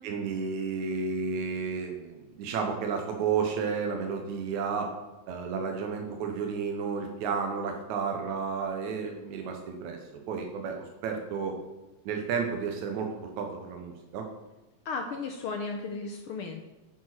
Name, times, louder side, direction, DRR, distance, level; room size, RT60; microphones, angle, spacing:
voice 1, 0.0-4.9 5.3-11.6 12.1-14.3, right 5 dB, 85° right, 3 dB, 2.3 m, -32 dB
voice 2, 14.8-16.6, left 4 dB, 80° left, 4 dB, 1.2 m, -35 dB
10.0 x 4.8 x 5.9 m, 1.1 s
omnidirectional pair, 3.3 m